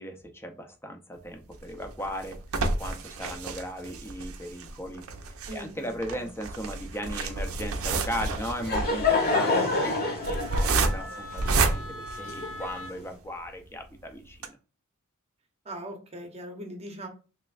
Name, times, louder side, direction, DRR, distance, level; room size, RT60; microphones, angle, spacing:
voice 1, 0.0-2.4 2.6-5.0 5.5-14.6, equal, 10° left, 5 dB, 0.5 m, -37 dB
sound 1, 1.5-12.9 13.4-13.5 13.8-13.9 14.3-14.5, right 3 dB, 70° right, 0.5 m, -30 dB
voice 2, 5.5-6.3 15.6-17.1, right 1 dB, 30° right, 4 dB, 0.8 m, -40 dB
Wind instrument woodwind instrument, 7.8-13.0, left 1 dB, 75° left, 1.1 m, -44 dB
Laughter / Crowd, 8.3-12.9, left 3 dB, 45° left, 1.0 m, -28 dB
3.2 x 3.1 x 2.4 m, 0.34 s
head